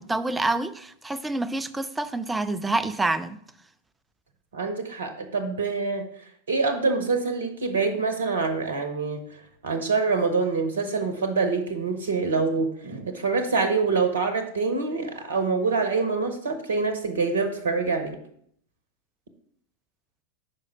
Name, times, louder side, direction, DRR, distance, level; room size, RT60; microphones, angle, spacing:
voice 1, 0.0-3.4, right 2 dB, 10° right, 0.4 m, -27 dB
voice 2, 4.5-6.0 6.5-9.2 9.6-18.2, right 4 dB, 65° right, 0.8 m, -25 dB
5.2 x 4.9 x 5.5 m
figure-of-eight pair, 90°, 0 cm